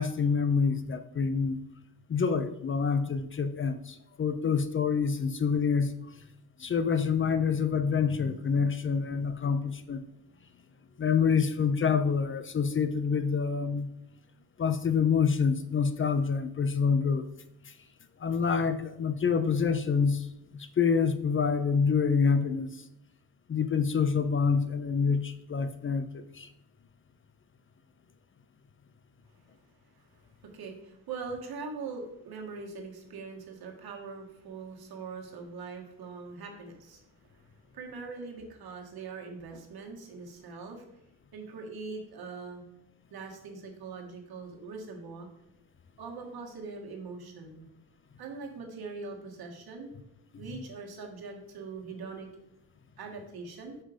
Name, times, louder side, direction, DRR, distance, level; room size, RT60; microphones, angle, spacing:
voice 1, 0.0-1.6 2.1-6.0 6.6-10.0 11.0-13.9 14.6-17.3 17.7-17.8 18.2-20.3 20.6-22.8 23.5-26.5, left 6 dB, 35° left, 10 dB, 0.4 m, -27 dB
voice 2, 30.5-37.0 37.3-37.4 37.7-40.9 41.3-42.6 43.1-45.3 46.0-47.7 48.2-49.9 50.4-52.3 53.0-53.8, right 4 dB, 80° right, 1 dB, 1.5 m, -42 dB
5.6 x 4.9 x 4.9 m, 0.84 s
wide cardioid pair, 125°, 37 cm